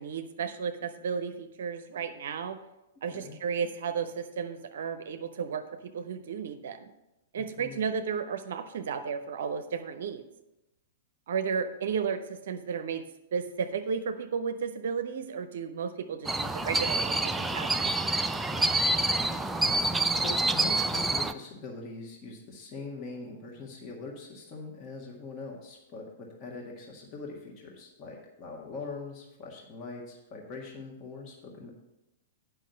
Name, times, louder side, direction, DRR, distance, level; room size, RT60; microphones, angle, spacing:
voice 1, 0.0-2.6 3.0-6.9 7.3-10.2 11.3-13.0 13.3-18.7, right 6 dB, 60° right, 8 dB, 0.6 m, -34 dB
voice 2, 7.4-7.9 19.6-31.7, left 3 dB, 35° left, -1 dB, 1.7 m, -42 dB
sound 1, 16.2-21.3, right 2 dB, 5° right, 0.4 m, -27 dB
9.1 x 5.5 x 5.6 m, 0.95 s
figure-of-eight pair, 105°, 0 cm